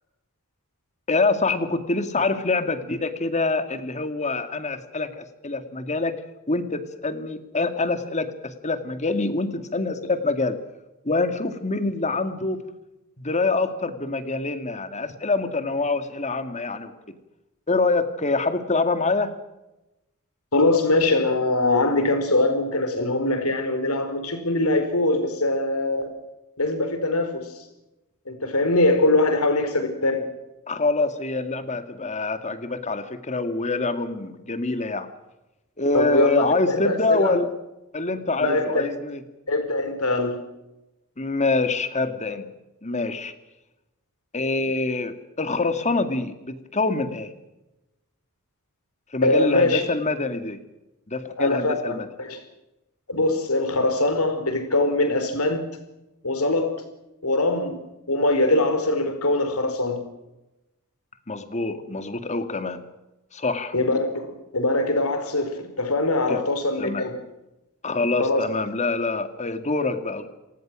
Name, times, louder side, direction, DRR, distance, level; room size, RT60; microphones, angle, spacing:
voice 1, 1.1-6.2 6.5-10.6 11.0-12.6 13.2-17.2 17.7-19.3 30.7-35.1 35.8-37.5 37.9-39.2 41.2-42.5 42.8-43.3 44.3-47.3 49.1-50.6 51.1-52.1 61.3-62.8 63.3-63.7 66.3-66.4 66.8-67.1 67.8-70.3, left 3 dB, 30° left, 9 dB, 2.1 m, -25 dB
voice 2, 20.5-26.2 26.6-27.6 28.3-30.2 35.9-37.4 38.4-39.0 39.5-40.4 49.2-49.8 51.4-52.4 53.1-55.6 56.2-56.7 57.2-57.8 58.1-60.0 63.7-67.1 68.2-68.4, left 2 dB, 80° left, 8 dB, 4.9 m, -22 dB
28.5 x 19.5 x 6.3 m, 0.97 s
head